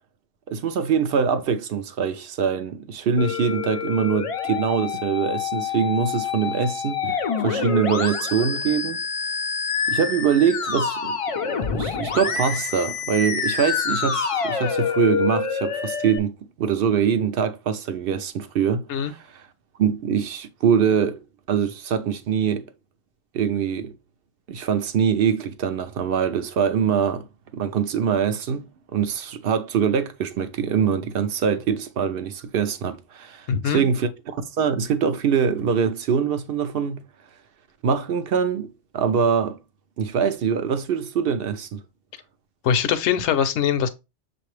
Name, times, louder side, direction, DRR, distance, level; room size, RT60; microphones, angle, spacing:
voice 1, 0.5-9.0 9.9-19.4 19.8-21.2 21.5-22.6 23.3-24.0 24.5-27.3 27.5-28.7 28.9-37.0 37.8-39.6 40.0-41.8, right 7 dB, 60° right, 0.7 m, -23 dB
Musical instrument, 3.2-16.2, left 6 dB, 55° left, 0.3 m, -27 dB
voice 2, 33.5-33.8 42.6-43.9, left 8 dB, 75° left, 0.9 m, -22 dB
6.6 x 2.6 x 3.1 m
omnidirectional pair, 1.2 m